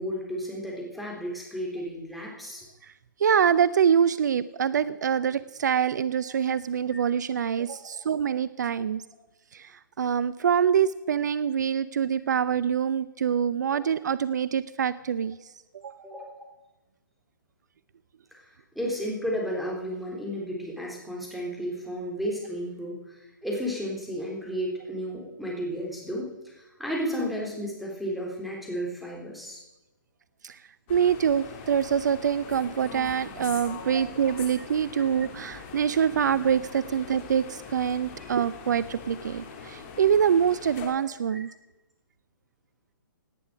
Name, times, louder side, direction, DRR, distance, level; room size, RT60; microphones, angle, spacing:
voice 1, 0.0-2.7 6.3-6.4 13.7-13.9 16.0-16.3 18.3-29.6 33.9-34.1 35.0-35.1 41.3-41.4, equal, ahead, -2 dB, 3.8 m, -33 dB
voice 2, 3.2-9.0 9.5-16.0 30.4-30.6 30.9-41.5, right 8 dB, 60° right, 17 dB, 0.5 m, -25 dB
sound 1, 30.9-40.9, left 6 dB, 35° left, 2.8 m, -42 dB
17.5 x 10.0 x 5.2 m, 1.0 s
figure-of-eight pair, 135°, 11 cm